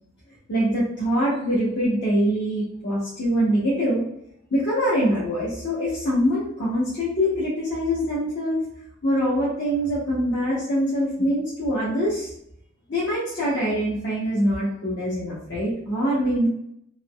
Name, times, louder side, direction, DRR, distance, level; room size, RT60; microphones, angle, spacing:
voice 1, 0.5-4.0 4.5-8.6 9.0-12.3 12.9-16.5, equal, 60° left, -8 dB, 0.9 m, -24 dB
3.5 x 3.0 x 2.3 m, 0.75 s
head